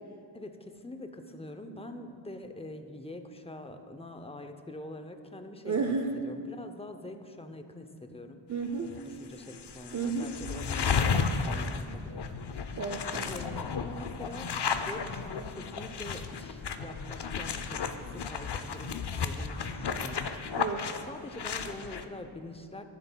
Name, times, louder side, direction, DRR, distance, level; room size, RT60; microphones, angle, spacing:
voice 1, 0.3-8.4 8.8-12.3 13.3-20.3 21.0-22.8, left 1 dB, 15° left, 7 dB, 0.6 m, -44 dB
voice 2, 5.6-6.1 8.5-8.9 9.9-10.3 12.8-13.3 20.6-20.9, right 4 dB, 40° right, 4 dB, 0.5 m, -31 dB
sound 1, 8.9-9.0 9.4-22.0, left 5 dB, 60° left, 0.6 m, -33 dB
11.0 x 10.5 x 2.2 m, 2.3 s
wide cardioid pair, 55°, 48 cm